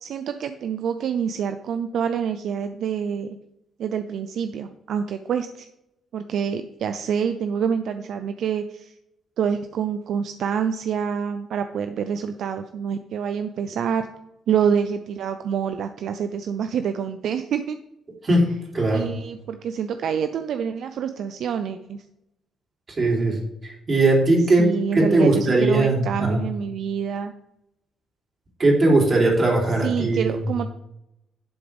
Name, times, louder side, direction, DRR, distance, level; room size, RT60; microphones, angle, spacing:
voice 1, 0.0-3.4 3.8-5.7 6.1-9.0 9.4-14.1 14.5-17.8 18.9-22.0 24.6-27.3 29.8-30.7, right 7 dB, 70° right, 9 dB, 0.5 m, -27 dB
voice 2, 18.2-19.1 23.0-23.4 23.6-26.4 28.6-30.4, right 2 dB, 35° right, -1 dB, 3.3 m, -19 dB
11.0 x 6.7 x 3.5 m, 0.83 s
cardioid pair, 90°, 0 cm